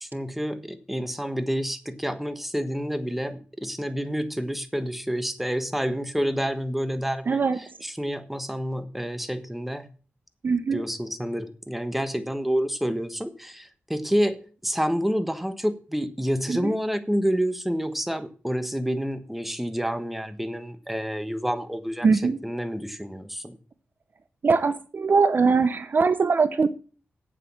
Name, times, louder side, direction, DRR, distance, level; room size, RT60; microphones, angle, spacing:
voice 1, 0.0-9.9 10.7-23.6, equal, 5° right, 10 dB, 1.3 m, -28 dB
voice 2, 7.3-7.6 10.4-10.8 16.5-16.6 22.0-22.4 24.4-26.7, right 4 dB, 50° right, 13 dB, 0.7 m, -21 dB
8.5 x 7.7 x 7.1 m, 0.39 s
wide cardioid pair, 85°, 4 cm